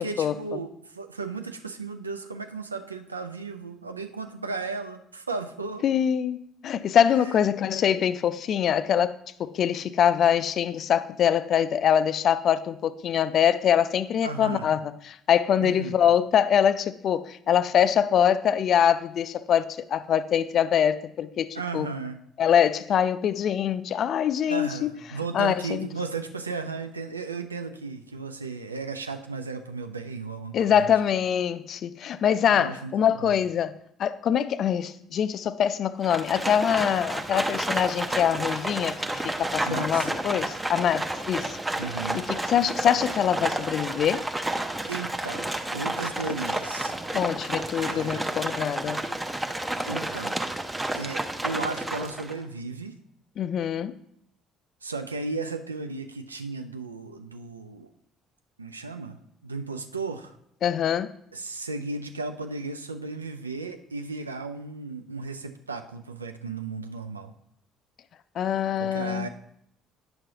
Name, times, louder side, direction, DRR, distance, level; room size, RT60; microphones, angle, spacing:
voice 1, 0.0-5.8 14.2-14.7 15.6-16.0 21.5-22.2 24.5-30.9 32.5-33.3 39.7-40.1 41.8-42.2 44.9-46.9 47.8-48.2 49.9-50.4 50.9-52.9 54.8-57.9 58.6-60.4 61.3-67.3 68.8-69.3, right 4 dB, 85° right, 0.3 m, -35 dB
voice 2, 5.8-9.1 9.4-21.9 22.4-24.9 25.3-25.9 30.5-41.6 42.1-44.2 47.1-49.0 53.4-54.0 60.6-61.2 68.4-69.3, left 9 dB, 45° left, 0.3 m, -24 dB
Livestock farm animals working animals, 36.0-52.4, right 1 dB, 15° right, 0.6 m, -31 dB
9.2 x 6.0 x 2.8 m
figure-of-eight pair, 50°, 0 cm